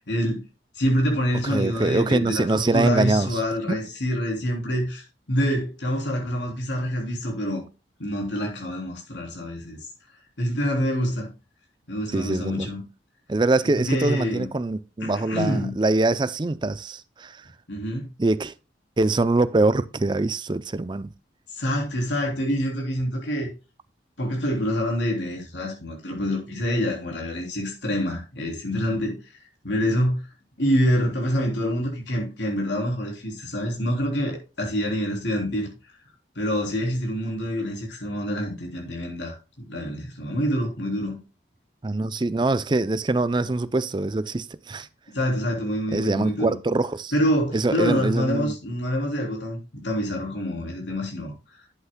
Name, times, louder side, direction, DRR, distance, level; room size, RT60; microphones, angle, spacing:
voice 1, 0.1-0.4 0.7-7.6 8.0-9.8 10.4-11.3 11.9-12.8 13.7-14.5 15.0-15.7 17.7-18.1 21.5-23.5 24.2-29.2 29.6-30.2 30.6-35.7 36.3-41.2 45.1-46.6 47.1-51.3, equal, 90° left, 3.4 m, -26 dB
voice 2, 1.4-3.4 3.7-3.8 12.1-12.7 13.3-17.4 18.2-18.5 19.0-21.1 41.8-44.9 45.9-47.1 47.5-48.5, right 2 dB, 25° right, 0.4 m, -24 dB
11.5 x 8.1 x 2.2 m
head